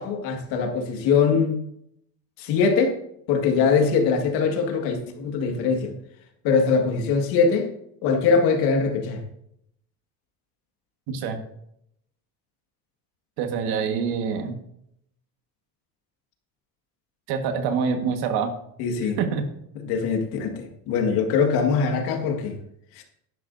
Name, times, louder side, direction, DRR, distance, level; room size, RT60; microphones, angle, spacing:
voice 1, 0.0-1.6 2.4-3.0 3.3-5.9 6.4-7.7 8.0-9.2 18.8-19.2 19.8-22.6 23.0-23.1, left 5 dB, 75° left, 3 dB, 2.0 m, -22 dB
voice 2, 11.1-11.4 13.4-14.5 17.3-18.5 19.2-19.5, right 6 dB, 70° right, 6 dB, 1.7 m, -25 dB
11.5 x 10.5 x 2.7 m, 0.74 s
cardioid pair, 170°, 39 cm